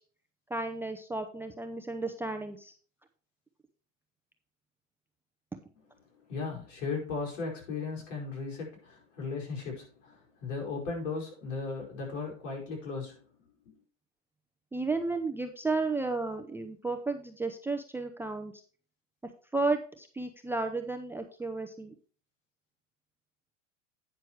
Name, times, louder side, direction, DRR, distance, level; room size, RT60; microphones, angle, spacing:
voice 1, 0.5-2.7 14.7-18.5 19.5-21.9, right 3 dB, 5° right, 0.5 m, -33 dB
voice 2, 6.2-13.8, left 4 dB, 70° left, 5.3 m, -37 dB
9.4 x 6.3 x 4.6 m
supercardioid pair, 135°, 38 cm